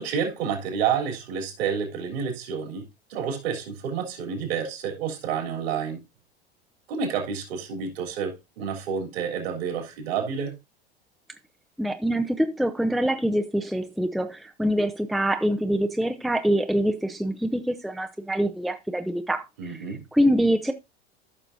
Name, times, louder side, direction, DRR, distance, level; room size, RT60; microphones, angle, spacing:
voice 1, 0.0-2.8 3.1-6.0 6.9-10.6 19.6-20.0, right 7 dB, 65° right, 3.5 m, -29 dB
voice 2, 11.8-19.8 20.1-20.7, equal, ahead, 0.6 m, -25 dB
14.0 x 6.0 x 2.7 m
hypercardioid pair, 85°, 32 cm